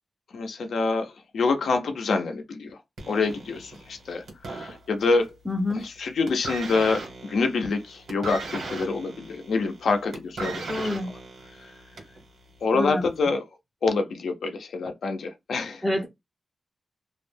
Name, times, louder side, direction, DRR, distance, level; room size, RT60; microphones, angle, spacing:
voice 1, 0.3-2.8 3.1-5.3 5.7-10.9 12.6-13.4 13.8-15.9, left 4 dB, 80° left, 0.5 m, -26 dB
sound 1, 3.0-5.3 5.6-6.0 6.3-12.2 13.0-13.1, right 3 dB, 75° right, 1.1 m, -37 dB
voice 2, 5.5-5.9 10.7-11.1 12.7-13.0 15.8-16.1, left 1 dB, ahead, 0.4 m, -26 dB
2.3 x 2.1 x 3.3 m
wide cardioid pair, 170°, 0 cm